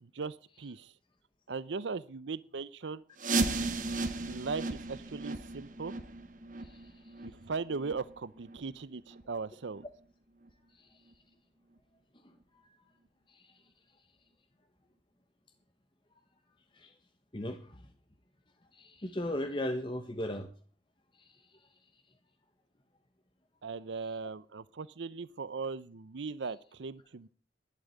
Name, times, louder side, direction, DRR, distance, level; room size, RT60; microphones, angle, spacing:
voice 1, 0.0-0.9 1.5-3.0 4.2-5.9 7.2-9.8 23.6-27.3, right 4 dB, 90° right, 17 dB, 0.6 m, -38 dB
sound 1, 3.2-8.8 9.1-9.2 9.8-9.9 10.5-10.6 11.1-11.2, right 3 dB, 45° right, 1.7 m, -35 dB
voice 2, 6.6-7.1 10.7-11.0 12.2-12.4 13.3-13.6 16.7-16.9 17.3-17.9 18.7-20.5 21.1-21.6, left 1 dB, 30° left, 7 dB, 1.3 m, -38 dB
12.0 x 11.5 x 7.8 m, 0.43 s
head